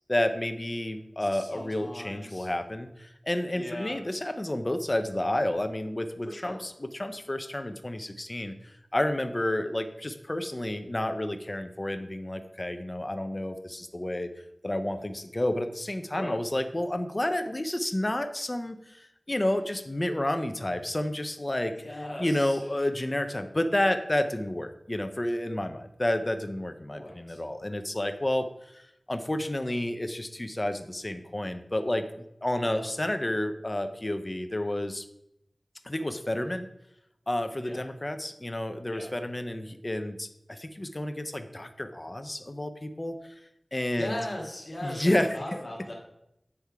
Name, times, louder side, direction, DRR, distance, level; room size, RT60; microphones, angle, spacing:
voice 1, 0.1-8.5 8.9-14.3 14.6-28.5 29.1-32.1 32.4-35.0 35.8-36.7 37.3-43.2 43.7-44.1 44.8-45.6, left 1 dB, 30° left, 8 dB, 0.5 m, -30 dB
voice 2, 1.2-2.5 3.5-4.0 6.3-6.6 16.1-16.4 21.8-22.6 26.9-27.4 32.6-32.8 37.6-37.8 38.9-39.1 44.0-45.9, left 1 dB, 50° left, -2 dB, 1.8 m, -38 dB
8.2 x 3.4 x 4.7 m, 0.82 s
wide cardioid pair, 70°, 0 cm